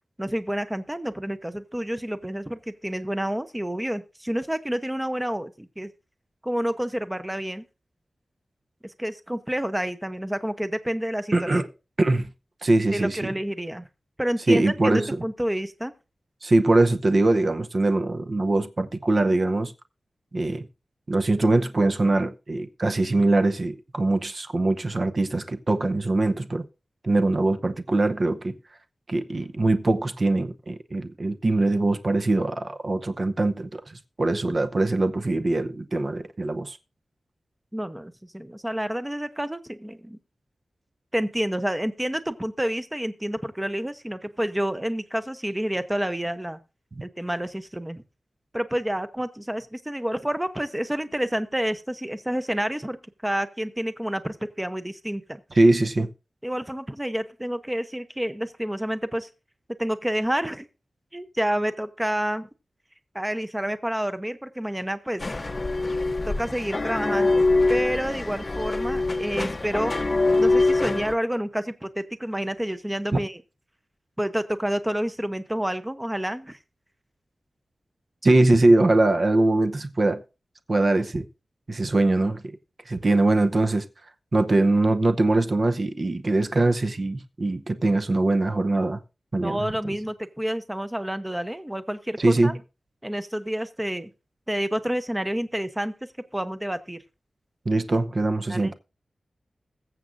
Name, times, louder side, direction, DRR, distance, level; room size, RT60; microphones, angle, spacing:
voice 1, 0.2-5.9 6.4-7.6 8.8-11.3 12.9-13.9 14.2-15.9 37.7-40.2 41.1-46.6 47.0-48.0 48.5-53.0 53.2-55.4 56.4-59.3 59.8-60.7 61.1-62.5 63.1-65.2 66.3-67.4 67.7-70.0 70.4-73.4 74.2-76.6 89.4-92.5 93.0-94.1 94.5-95.9 96.3-97.0 98.5-98.7, equal, 10° right, 0.7 m, -29 dB
voice 2, 11.3-11.7 12.0-12.3 12.6-13.3 14.5-15.2 16.4-19.7 20.3-20.7 21.1-26.6 27.0-28.6 29.1-36.8 55.5-56.1 73.1-73.2 78.2-80.2 80.7-81.2 81.7-82.5 82.9-83.9 84.3-89.0 89.3-89.7 92.2-92.6 97.7-98.7, right 2 dB, 45° right, 0.8 m, -22 dB
sound 1, 65.2-71.1, left 2 dB, 35° left, 0.7 m, -24 dB
21.0 x 7.5 x 2.6 m
wide cardioid pair, 115°, 0 cm